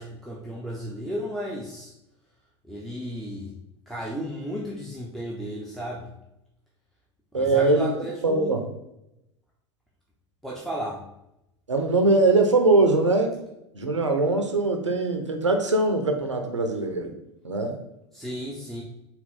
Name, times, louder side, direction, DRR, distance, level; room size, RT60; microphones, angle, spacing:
voice 1, 0.0-1.9 2.6-3.6 3.9-6.1 7.3-8.5 10.4-11.0 18.1-18.8, equal, ahead, -4 dB, 0.5 m, -34 dB
voice 2, 7.3-7.9 8.2-8.6 11.7-13.4 13.7-17.1 17.4-17.8, right 2 dB, 85° right, 5 dB, 0.5 m, -22 dB
3.7 x 2.3 x 3.6 m, 0.86 s
figure-of-eight pair, 80°, 15 cm